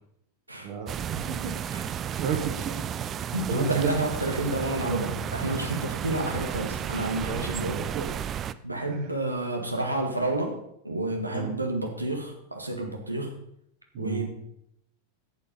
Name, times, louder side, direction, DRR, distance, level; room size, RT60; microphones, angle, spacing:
voice 1, 0.6-1.5 1.8-3.9 4.2-4.3 4.7-5.0 7.2-7.5 7.8-8.1 8.9-9.1 11.3-11.5 13.9-14.3, right 6 dB, 45° right, 4 dB, 2.2 m, -34 dB
sound 1, 0.9-8.5, right 9 dB, 25° right, 0.5 m, -33 dB
voice 2, 3.3-7.8 8.6-13.3 14.0-14.3, right 1 dB, 85° right, 3 dB, 1.9 m, -30 dB
10.5 x 8.6 x 5.4 m, 0.74 s
figure-of-eight pair, 90°, 0 cm